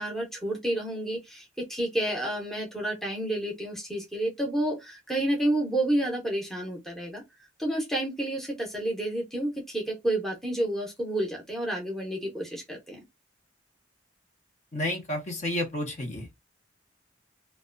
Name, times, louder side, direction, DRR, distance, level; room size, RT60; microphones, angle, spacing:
voice 1, 0.0-7.2 7.6-13.0, right 1 dB, ahead, 0.7 m, -30 dB
voice 2, 14.7-16.3, left 1 dB, 35° left, 0.6 m, -31 dB
2.6 x 2.1 x 2.5 m
head